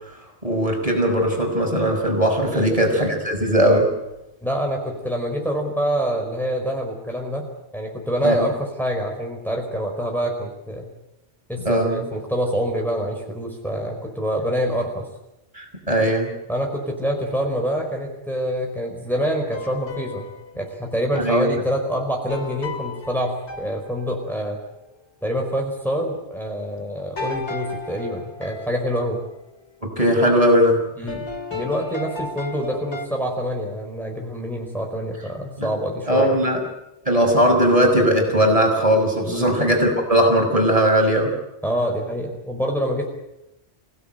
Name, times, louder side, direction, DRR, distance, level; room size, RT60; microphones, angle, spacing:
voice 1, 0.4-3.9 8.2-8.5 11.6-12.0 15.5-16.3 21.2-21.5 29.8-30.8 35.6-35.7 36.1-36.6 37.1-41.3, equal, 30° right, 2 dB, 5.8 m, -19 dB
voice 2, 2.5-2.9 4.4-7.4 7.7-10.9 11.5-15.1 16.5-20.3 20.5-24.6 25.2-29.2 31.0-36.3 39.2-39.6 41.6-43.1, equal, ahead, 1 dB, 4.7 m, -26 dB
sound 1, 19.1-20.7 22.3-24.5 27.2-29.2 31.1-33.1, left 3 dB, 85° left, 2.8 m, -34 dB
28.0 x 17.5 x 9.1 m, 0.94 s
omnidirectional pair, 1.1 m